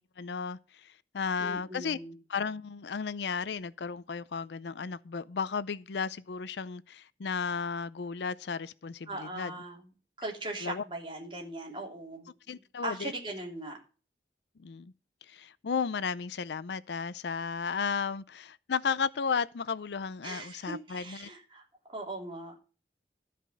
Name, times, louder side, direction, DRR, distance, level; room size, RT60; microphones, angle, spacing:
voice 1, 0.2-2.0 2.3-9.5 10.6-10.8 12.5-13.1 14.6-14.9 15.3-21.3, left 5 dB, 70° left, 0.5 m, -34 dB
voice 2, 1.4-2.1 9.1-9.9 10.2-12.3 12.8-13.8 20.2-22.6, right 2 dB, 25° right, 3.0 m, -39 dB
13.5 x 5.1 x 6.4 m
head